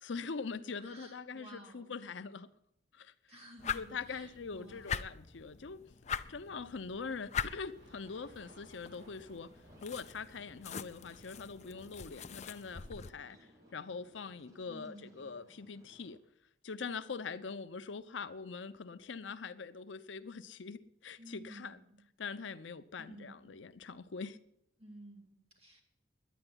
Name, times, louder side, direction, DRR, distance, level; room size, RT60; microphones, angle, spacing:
voice 1, 0.0-2.5 2.9-3.1 3.7-5.8 6.3-9.5 9.8-13.4 13.7-16.2 16.6-21.8 22.2-24.4, left 5 dB, 85° left, 0.7 m, -43 dB
voice 2, 0.8-2.0 3.3-5.0 14.7-15.3 21.2-22.0 23.0-23.6 24.8-25.8, right 1 dB, 35° right, 3.3 m, -54 dB
sound 1, 3.6-13.1, left 7 dB, 40° left, 0.5 m, -43 dB
sound 2, 7.5-14.5, right 1 dB, 65° right, 2.6 m, -63 dB
sound 3, 9.1-16.2, equal, 20° right, 1.7 m, -64 dB
10.5 x 9.8 x 9.6 m
head